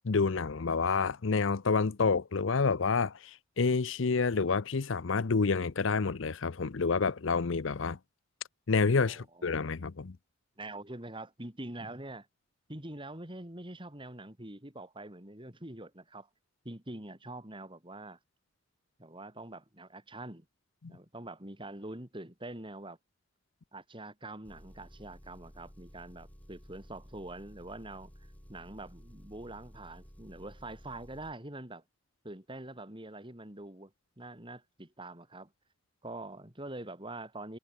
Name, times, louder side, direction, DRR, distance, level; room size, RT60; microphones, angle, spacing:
voice 1, 0.0-8.0 8.7-10.2 20.8-20.9, left 4 dB, 70° left, 0.7 m, -28 dB
voice 2, 9.0-9.6 10.6-12.3 12.7-16.3 16.7-18.2 19.0-20.5 20.9-23.0 23.7-28.1 28.5-31.8 32.2-33.9 34.2-35.5 36.0-37.6, right 2 dB, 25° right, 3.5 m, -44 dB
Engine, 24.5-31.4, equal, 5° left, 3.5 m, -54 dB
head